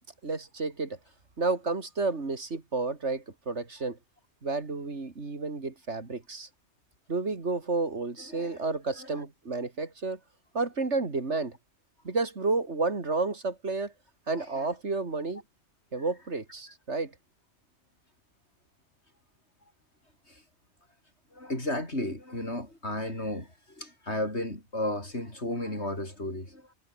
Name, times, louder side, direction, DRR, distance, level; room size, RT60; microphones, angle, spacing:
voice 1, 0.2-1.0 1.4-4.0 4.4-6.5 7.1-10.2 10.5-11.6 12.0-13.9 14.3-15.4 15.9-17.1, right 3 dB, 75° right, 3.1 m, -31 dB
voice 2, 8.3-8.6 9.0-9.2 14.3-14.7 20.3-20.4 21.3-26.7, left 1 dB, 70° left, 8.3 m, -34 dB
omnidirectional pair, 1.2 m